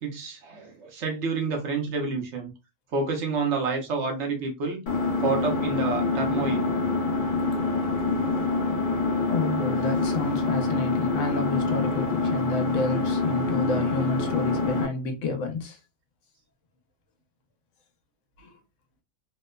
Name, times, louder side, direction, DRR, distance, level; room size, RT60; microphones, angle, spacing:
voice 1, 0.0-2.5 2.9-4.8 5.2-6.7, right 4 dB, 65° right, 0.9 m, -29 dB
Engine, 4.9-14.9, left 3 dB, 45° left, 0.7 m, -26 dB
voice 2, 9.3-15.8 18.4-18.6, left 2 dB, 70° left, 1.0 m, -30 dB
2.8 x 2.0 x 2.2 m
omnidirectional pair, 1.4 m